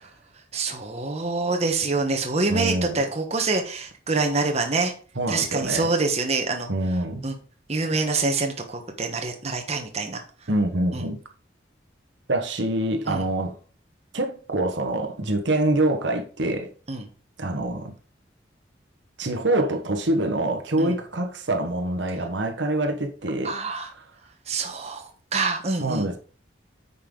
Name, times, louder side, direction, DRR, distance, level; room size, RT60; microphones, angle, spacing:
voice 1, 0.5-4.9 5.3-6.7 7.2-7.3 7.7-10.2 10.9-11.1 13.1-13.2 16.9-17.1 20.8-20.9 23.4-23.9 24.5-26.2, right 3 dB, 35° right, 1.1 m, -26 dB
voice 2, 2.5-3.0 5.2-5.9 6.7-7.3 10.5-11.2 12.3-13.6 14.1-16.7 17.4-17.9 19.2-23.5 25.8-26.2, right 1 dB, 70° right, 1.2 m, -25 dB
9.0 x 5.5 x 3.8 m
head